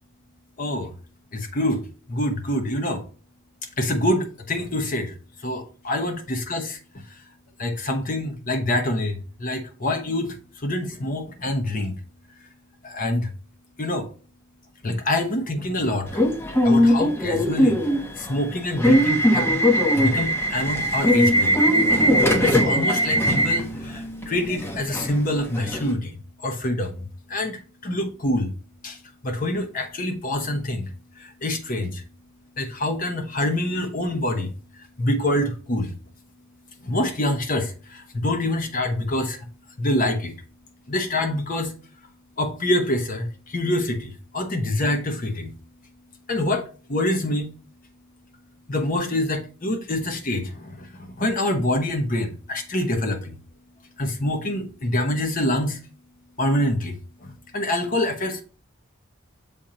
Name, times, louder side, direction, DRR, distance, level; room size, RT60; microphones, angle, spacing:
voice 1, 0.6-0.9 1.3-1.8 2.1-3.0 3.8-5.2 5.4-6.8 7.6-10.4 10.6-12.0 12.8-13.3 13.8-14.1 14.8-16.2 16.6-17.8 18.2-19.6 20.0-21.5 22.4-27.0 27.3-28.5 28.8-29.0 29.2-30.9 31.2-32.0 32.6-34.5 35.0-35.9 36.8-39.4 39.8-40.3 40.9-41.7 42.4-45.5 46.3-46.6 46.9-47.5 48.7-50.9 51.2-53.4 54.0-55.8 56.4-58.4, left 1 dB, 40° left, 0.9 m, -26 dB
Subway metro underground / Alarm, 16.1-25.9, equal, 10° left, 0.8 m, -20 dB
6.9 x 2.9 x 5.0 m
head